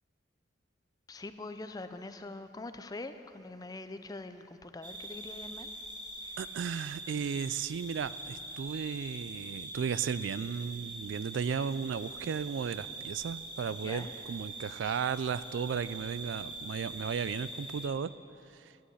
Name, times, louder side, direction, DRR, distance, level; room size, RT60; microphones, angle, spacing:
voice 1, 1.1-5.7 13.8-14.1, left 2 dB, 20° left, 10 dB, 0.4 m, -43 dB
sound 1, 4.8-17.9, right 2 dB, 25° right, 1.1 m, -43 dB
voice 2, 6.4-18.1 18.6-18.7, right 6 dB, 90° right, 16 dB, 0.3 m, -35 dB
11.5 x 7.8 x 8.3 m, 2.6 s
head